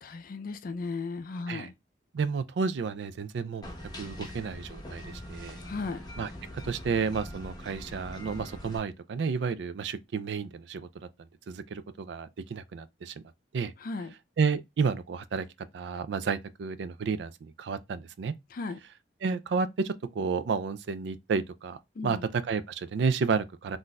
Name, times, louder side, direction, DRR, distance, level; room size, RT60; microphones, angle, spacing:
voice 1, 0.0-1.7 5.6-6.0 13.8-14.1 18.5-18.8 22.0-22.2, left 3 dB, 50° left, 0.4 m, -36 dB
voice 2, 2.1-3.7 4.0-5.6 6.2-10.9 11.5-13.2 13.5-13.7 14.4-15.5 15.7-18.3 19.2-23.8, right 5 dB, 75° right, 0.3 m, -31 dB
sound 1, 3.6-8.8, left 1 dB, 25° left, 0.7 m, -42 dB
3.9 x 2.6 x 2.2 m
head